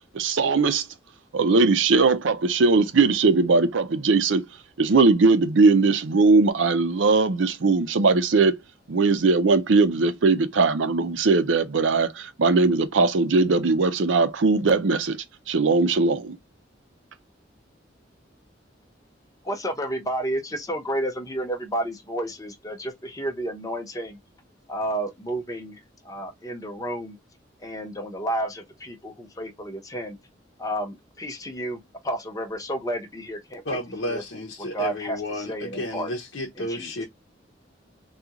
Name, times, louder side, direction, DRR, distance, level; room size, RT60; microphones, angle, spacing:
voice 1, 0.1-0.8 1.3-4.5 4.8-8.6 8.9-15.2 15.5-16.4, right 3 dB, 85° right, 0.6 m, -20 dB
voice 2, 19.4-24.2 24.7-27.2 27.6-30.2 30.6-33.8 34.0-34.2 34.7-36.1 36.6-37.1, right 1 dB, 20° left, 0.8 m, -31 dB
voice 3, 33.6-37.1, left 1 dB, 80° left, 0.8 m, -32 dB
3.6 x 2.4 x 2.9 m
head